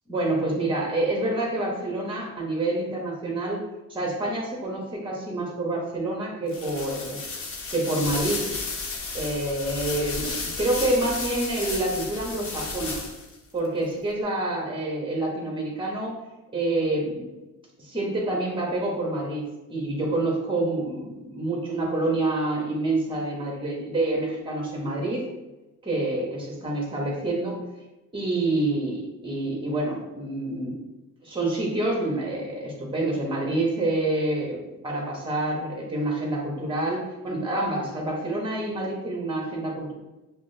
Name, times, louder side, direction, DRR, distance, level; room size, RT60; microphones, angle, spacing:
voice 1, 0.1-3.6 3.9-7.2 7.7-8.5 9.1-13.0 13.5-16.1 16.5-17.3 17.8-25.2 25.8-27.6 28.1-30.8 31.2-39.9, right 2 dB, 15° right, -1 dB, 1.1 m, -27 dB
sound 1, 6.5-13.4, left 3 dB, 45° left, 0.9 m, -33 dB
5.8 x 2.1 x 2.7 m, 1.0 s
cardioid pair, 90°, 30 cm